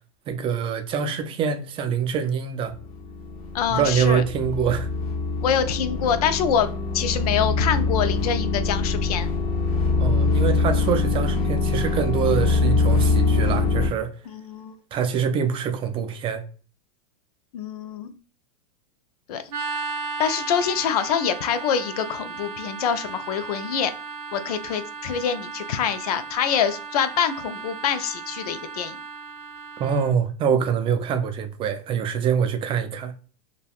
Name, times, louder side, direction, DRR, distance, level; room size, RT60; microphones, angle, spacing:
voice 1, 0.3-2.7 3.7-4.9 10.0-14.1 14.9-16.4 29.8-33.1, right 7 dB, 25° right, 0.4 m, -24 dB
sound 1, 2.7-13.9, left 3 dB, 45° left, 0.9 m, -23 dB
voice 2, 3.5-4.2 5.4-9.3 14.3-14.7 17.5-18.1 19.3-19.4 20.2-23.9 24.3-29.0, left 8 dB, 75° left, 0.5 m, -25 dB
sound 2, 19.5-30.1, right 4 dB, 90° right, 0.7 m, -35 dB
3.3 x 2.2 x 2.3 m
hypercardioid pair, 125°, 19 cm